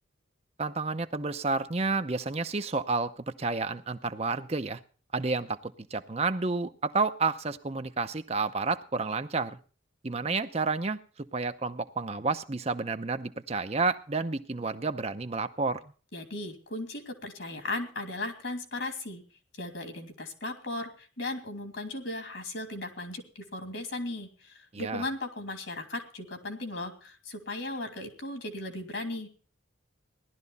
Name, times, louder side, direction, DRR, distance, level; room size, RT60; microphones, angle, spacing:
voice 1, 0.6-4.8 5.1-9.6 10.0-11.0 11.3-15.8 24.7-25.1, right 3 dB, 30° right, 8 dB, 0.7 m, -30 dB
voice 2, 16.1-19.2 19.6-29.3, left 2 dB, 65° left, 5 dB, 2.8 m, -37 dB
17.0 x 12.0 x 4.1 m, 0.38 s
head